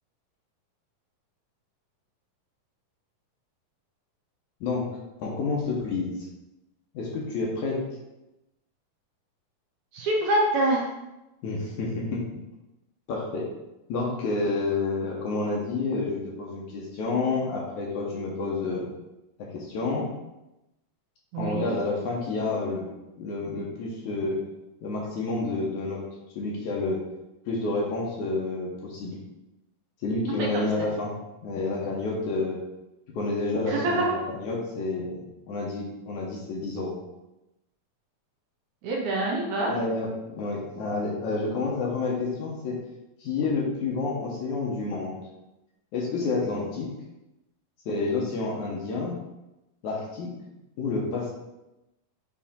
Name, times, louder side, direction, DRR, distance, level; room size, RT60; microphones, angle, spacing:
voice 1, 5.2-6.2 6.9-7.8 11.4-12.2 13.1-13.5 13.9-18.9 19.5-20.1 21.4-22.8 23.2-24.4 24.8-26.0 26.4-27.0 27.5-29.2 30.0-31.2 31.4-32.6 33.1-35.2 35.5-37.0 39.6-42.7 43.2-45.2 45.9-46.9 47.9-49.2 49.8-50.3 50.8-51.3, left 3 dB, 70° left, -2 dB, 2.1 m, -29 dB
voice 2, 9.9-10.8 21.3-21.8 30.4-30.9 33.7-34.2 38.8-39.7, right 2 dB, 70° right, -3 dB, 2.0 m, -26 dB
7.3 x 3.4 x 4.3 m, 0.95 s
omnidirectional pair, 4.0 m